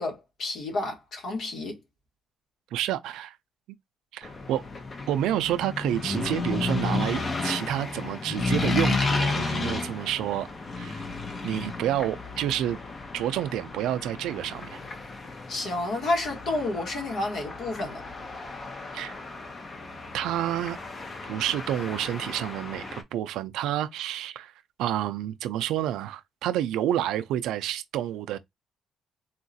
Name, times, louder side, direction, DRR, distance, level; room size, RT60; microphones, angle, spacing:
voice 1, 0.0-1.8 15.5-18.0, left 2 dB, 75° left, 1.4 m, -30 dB
voice 2, 2.7-3.4 4.1-4.6 5.1-10.5 10.8-11.0 11.4-12.8 13.1-14.8 18.9-19.1 20.1-20.8 21.3-24.5 24.8-28.4, right 12 dB, 90° right, 0.3 m, -29 dB
sound 1, 4.2-23.0, left 3 dB, 40° left, 0.7 m, -33 dB
3.7 x 2.4 x 2.6 m
cardioid pair, 90°, 0 cm